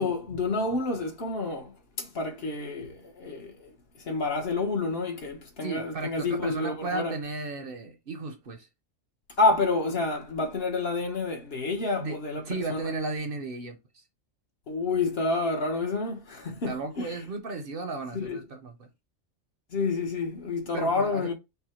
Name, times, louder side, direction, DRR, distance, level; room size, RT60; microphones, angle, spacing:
voice 1, 0.0-3.7 4.0-7.1 9.4-12.4 12.7-12.8 14.7-17.2 18.1-18.4 19.7-21.3, left 3 dB, 55° left, 1.3 m, -29 dB
voice 2, 5.6-8.7 12.0-12.2 12.5-14.0 16.6-18.9 20.7-21.3, right 3 dB, 55° right, 0.8 m, -35 dB
5.5 x 2.2 x 4.2 m
omnidirectional pair, 1.2 m